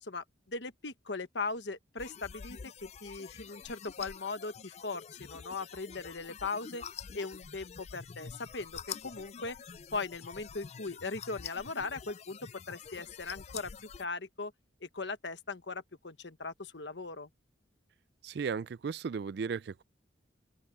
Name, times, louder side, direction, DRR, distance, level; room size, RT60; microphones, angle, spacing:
voice 1, 0.0-6.8 7.1-9.6 9.9-12.4 12.7-13.7 14.0-14.5 14.8-17.3, left 3 dB, 65° left, 1.3 m, -39 dB
sound 1, 2.0-14.1, left 7 dB, 35° left, 0.3 m, -47 dB
voice 2, 18.2-19.8, right 5 dB, 55° right, 0.3 m, -35 dB
open air
head